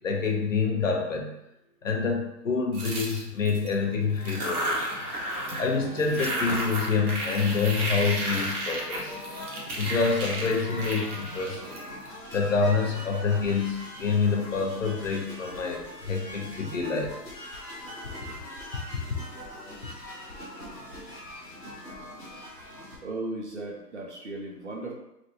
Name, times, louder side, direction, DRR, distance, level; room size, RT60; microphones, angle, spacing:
voice 1, 0.0-1.3 1.8-5.0 5.6-9.1 9.8-11.8 12.3-17.1, left 5 dB, 50° left, 1 dB, 0.6 m, -27 dB
sound 1, 2.7-3.7 4.2-5.7 6.0-12.3, right 1 dB, 60° right, 1.0 m, -33 dB
sound 2, 3.6-23.0, left 1 dB, 20° left, 1.2 m, -42 dB
voice 2, 22.7-24.9, right 2 dB, 45° right, -1 dB, 0.6 m, -36 dB
3.3 x 2.5 x 2.7 m, 0.84 s
hypercardioid pair, 165°, 50 cm